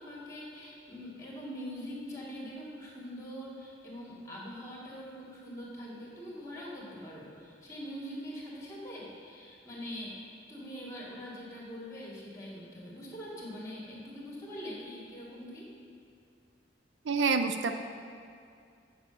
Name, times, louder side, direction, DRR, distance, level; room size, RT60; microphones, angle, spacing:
voice 1, 0.0-15.7, equal, 15° left, -4 dB, 2.0 m, -43 dB
voice 2, 17.1-17.7, right 4 dB, 85° right, 8 dB, 0.5 m, -27 dB
7.0 x 6.7 x 7.9 m, 2.3 s
head